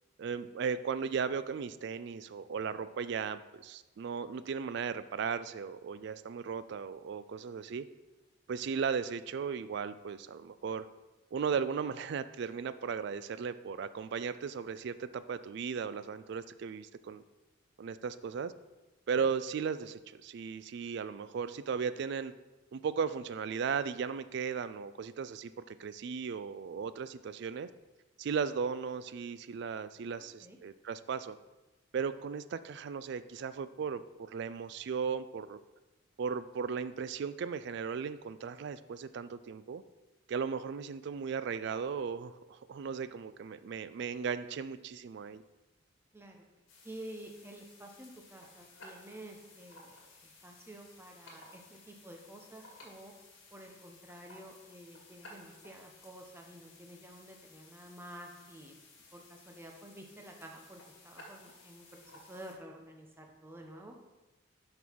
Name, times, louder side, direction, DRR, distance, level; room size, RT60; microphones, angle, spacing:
voice 1, 0.2-7.9 8.5-10.9 11.3-17.2 17.8-18.5 19.1-22.3 22.7-27.7 28.2-31.4 31.9-35.6 36.2-39.8 40.3-45.4, right 6 dB, 55° right, 14 dB, 0.3 m, -36 dB
voice 2, 30.2-30.6 46.1-46.4 46.8-53.1 53.5-58.8 59.1-64.0, right 1 dB, 10° right, 2 dB, 0.8 m, -50 dB
sound 1, 46.7-62.5, left 2 dB, 65° left, 1.8 m, -57 dB
6.2 x 5.4 x 4.5 m, 1.1 s
head